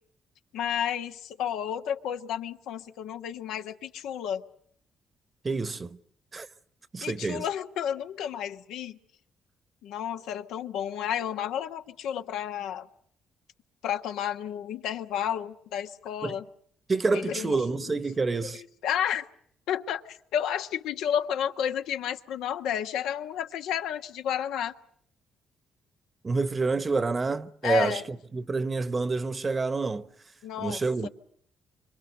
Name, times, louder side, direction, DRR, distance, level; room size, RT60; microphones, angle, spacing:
voice 1, 0.5-4.4 7.0-9.0 9.8-12.9 13.8-16.4 17.1-17.9 18.4-19.3 19.7-24.7 27.6-28.0 30.4-31.1, left 9 dB, 90° left, 1.3 m, -31 dB
voice 2, 5.4-6.0 6.3-6.5 6.9-7.4 16.2-16.3 16.9-18.6 26.2-30.1 30.6-31.1, right 3 dB, 30° right, 1.1 m, -28 dB
26.5 x 24.5 x 6.6 m
cardioid pair, 90°, 0 cm